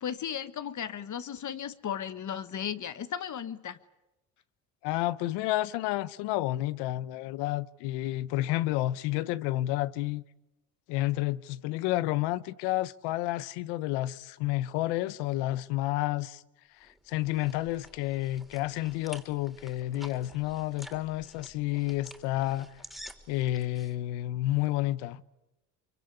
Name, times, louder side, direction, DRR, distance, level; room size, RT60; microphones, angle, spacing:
voice 1, 0.0-3.8, left 9 dB, 45° left, 1.3 m, -35 dB
voice 2, 4.8-10.2 10.9-16.4 16.8-22.7 23.3-25.2, left 16 dB, 85° left, 0.9 m, -30 dB
sound 1, 16.8-23.9, equal, ahead, 3.5 m, -50 dB
24.0 x 24.0 x 9.8 m
supercardioid pair, 80°, 40 cm